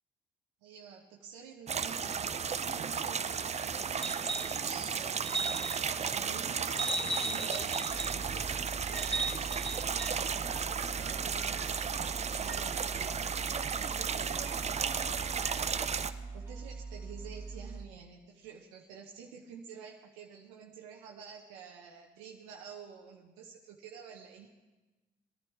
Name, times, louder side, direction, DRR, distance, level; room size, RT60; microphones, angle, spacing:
voice 1, 0.6-13.3 13.8-14.4 16.3-24.5, right 7 dB, 85° right, 0 dB, 1.1 m, -49 dB
sound 1, 1.7-16.1, right 6 dB, 35° right, 0.6 m, -34 dB
sound 2, 4.0-4.6 5.2-5.9 6.8-8.2 9.0-10.2 11.8-11.9, right 2 dB, 5° left, 2.4 m, -36 dB
sound 3, 7.9-17.8, right 3 dB, 15° right, 2.5 m, -43 dB
19.5 x 10.5 x 4.7 m, 1.1 s
hypercardioid pair, 55°, 20 cm